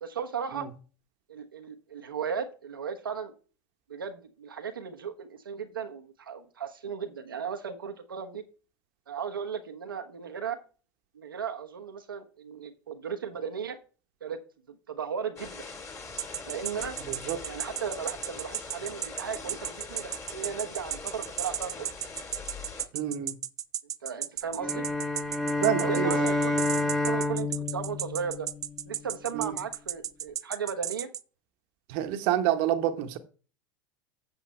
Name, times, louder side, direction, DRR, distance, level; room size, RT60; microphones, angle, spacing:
voice 1, 0.0-0.7 1.3-3.3 3.9-8.4 9.1-10.6 11.1-13.8 14.2-14.4 14.9-15.6 16.4-17.0 17.4-21.9 24.0-24.8 25.8-26.5 27.0-28.5 28.8-31.1, right 7 dB, 90° right, 1.1 m, -36 dB
sound 1, 15.4-22.8, left 4 dB, 25° left, 2.5 m, -42 dB
sound 2, 16.2-31.2, right 10 dB, 30° right, 0.4 m, -34 dB
voice 2, 17.0-17.4 22.9-23.4 25.6-26.3 29.3-29.6 31.9-33.2, right 11 dB, 60° right, 1.2 m, -28 dB
sound 3, 24.6-29.0, left 2 dB, ahead, 1.3 m, -29 dB
8.1 x 8.1 x 3.3 m
hypercardioid pair, 85°, 11 cm